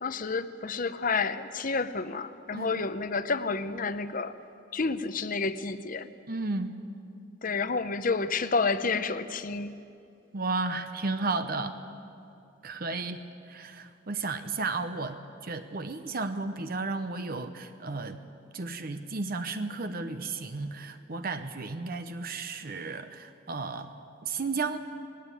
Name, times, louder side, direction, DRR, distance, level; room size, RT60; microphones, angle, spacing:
voice 1, 0.0-4.3 4.7-6.1 7.4-9.8, left 4 dB, 45° left, 12 dB, 0.7 m, -30 dB
voice 2, 6.3-6.8 10.3-11.8 12.6-18.2 18.5-23.9 24.2-24.8, right 3 dB, 50° right, 9 dB, 0.8 m, -33 dB
19.5 x 16.0 x 9.8 m, 2.6 s
head